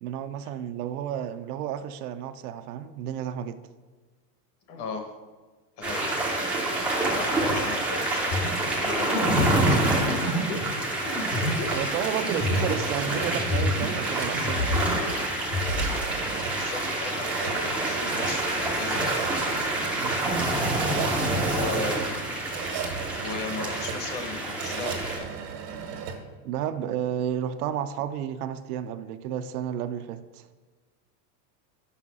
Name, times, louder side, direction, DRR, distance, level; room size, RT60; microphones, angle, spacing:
voice 1, 0.0-3.6 11.7-14.9 20.0-20.4 26.4-30.5, right 9 dB, 65° right, 0.6 m, -32 dB
voice 2, 4.7-5.1 5.8-6.1 7.1-9.9 10.2-10.4 16.5-19.6 21.5-22.0 23.2-25.3, left 4 dB, 30° left, 0.8 m, -36 dB
sound 1, 5.8-25.2, right 2 dB, 5° right, 0.4 m, -27 dB
sound 2, 8.3-14.1 14.3-15.9, left 1 dB, 80° left, 1.8 m, -29 dB
sound 3, 11.6-26.2, right 6 dB, 85° right, 1.6 m, -37 dB
5.7 x 5.3 x 6.0 m
supercardioid pair, 165°, 48 cm